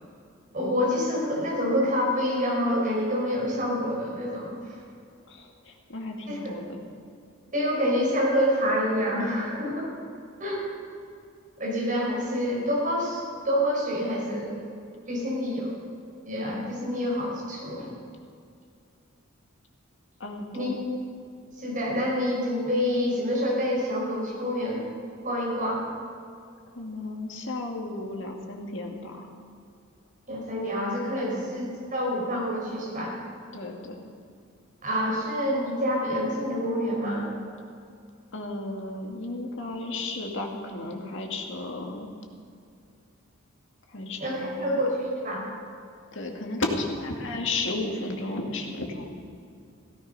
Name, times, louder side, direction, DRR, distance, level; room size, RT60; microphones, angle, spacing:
voice 1, 0.5-4.5 6.3-6.4 7.5-9.9 10.4-10.6 11.6-14.5 15.1-15.7 16.2-17.9 20.5-20.7 21.6-24.9 25.2-25.8 30.3-31.7 31.9-33.1 34.8-37.3 44.2-45.4, equal, 40° right, -3 dB, 5.3 m, -27 dB
voice 2, 5.3-6.8 20.2-20.8 26.7-29.4 31.2-31.5 33.5-34.1 38.3-42.1 43.9-44.8 46.1-49.1, left 2 dB, 65° left, 2 dB, 2.1 m, -34 dB
16.5 x 14.5 x 5.6 m, 2.4 s
head